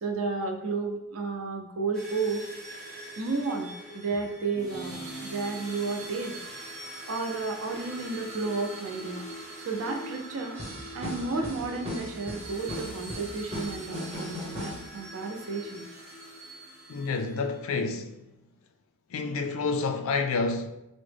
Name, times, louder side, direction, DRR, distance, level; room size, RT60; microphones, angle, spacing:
voice 1, 0.0-2.5 3.2-6.4 7.1-9.2 9.6-10.6 10.9-15.9, right 3 dB, 70° right, 0.5 m, -32 dB
sound 1, 1.9-17.6, right 1 dB, ahead, 0.6 m, -43 dB
sound 2, 10.5-15.0, left 1 dB, 30° right, 0.8 m, -38 dB
voice 2, 16.9-18.2 19.1-20.7, left 4 dB, 70° left, 0.4 m, -29 dB
3.8 x 2.0 x 3.3 m
head